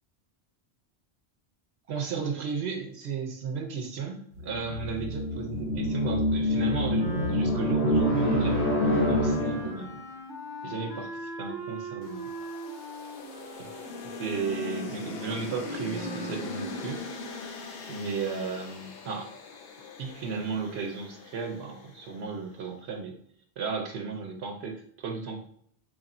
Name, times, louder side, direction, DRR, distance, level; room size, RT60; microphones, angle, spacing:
voice 1, 1.9-9.9 10.6-12.3 13.6-13.7 14.1-17.0 17.9-19.3 20.0-23.2 23.6-25.4, right 5 dB, 75° right, 3 dB, 0.9 m, -34 dB
sound 1, 4.4-9.9, equal, 90° left, 1.2 m, -26 dB
Wind instrument woodwind instrument, 7.0-16.4, right 1 dB, 5° right, 0.6 m, -40 dB
sound 2, 12.0-22.4, left 3 dB, 70° left, 0.8 m, -41 dB
3.1 x 2.5 x 4.1 m, 0.64 s
omnidirectional pair, 1.1 m